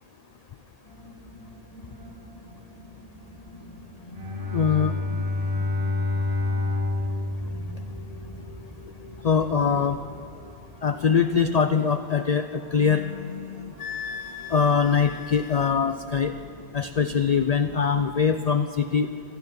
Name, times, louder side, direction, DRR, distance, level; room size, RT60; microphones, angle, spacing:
sound 1, 0.8-18.1, left 1 dB, 20° left, 2.1 m, -45 dB
Bowed string instrument, 4.1-8.5, left 2 dB, 40° right, 2.9 m, -28 dB
voice 1, 4.5-5.0 9.2-10.0 10.8-13.7 14.5-16.3 16.7-19.1, left 6 dB, 80° left, 9 dB, 0.3 m, -23 dB
Wind instrument woodwind instrument, 13.8-15.8, left 6 dB, 60° left, 0.7 m, -37 dB
15.5 x 12.0 x 5.2 m, 2.8 s
omnidirectional pair, 1.2 m